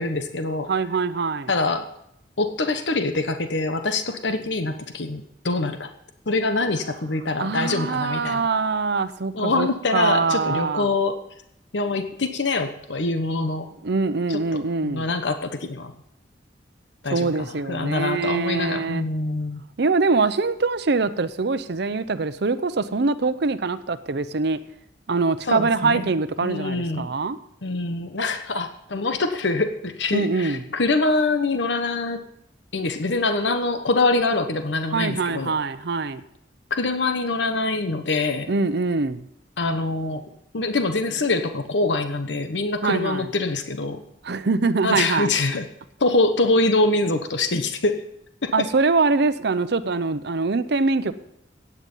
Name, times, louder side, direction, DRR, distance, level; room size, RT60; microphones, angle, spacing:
voice 1, 0.0-0.7 1.5-1.9 2.4-5.9 6.3-8.5 9.3-11.2 11.7-13.7 14.3-15.9 17.0-19.6 25.5-26.1 26.4-27.1 27.6-32.2 32.7-35.5 36.7-38.5 39.6-40.2 40.5-44.0 44.8-45.7 46.0-48.0 48.4-48.5, left 3 dB, 80° left, 7 dB, 1.1 m, -24 dB
voice 2, 0.7-1.5 7.4-10.9 13.8-15.1 17.1-19.0 19.8-24.6 25.1-27.4 30.1-30.6 34.9-36.2 38.5-39.2 42.8-43.3 44.2-45.3 48.5-51.1, right 4 dB, 65° right, 12 dB, 0.7 m, -23 dB
16.0 x 9.5 x 5.5 m, 0.75 s
head